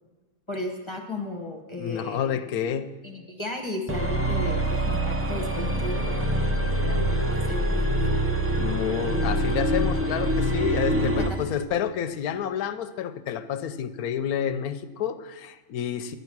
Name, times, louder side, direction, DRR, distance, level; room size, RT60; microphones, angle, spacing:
voice 1, 0.5-2.3 3.0-8.1 10.9-11.4, left 2 dB, 20° left, 2 dB, 1.0 m, -35 dB
voice 2, 1.8-2.9 8.6-16.2, left 9 dB, 80° left, 11 dB, 1.1 m, -29 dB
sound 1, 3.9-11.4, right 1 dB, 20° right, 0.4 m, -25 dB
11.0 x 8.2 x 6.0 m, 1.3 s
omnidirectional pair, 1.6 m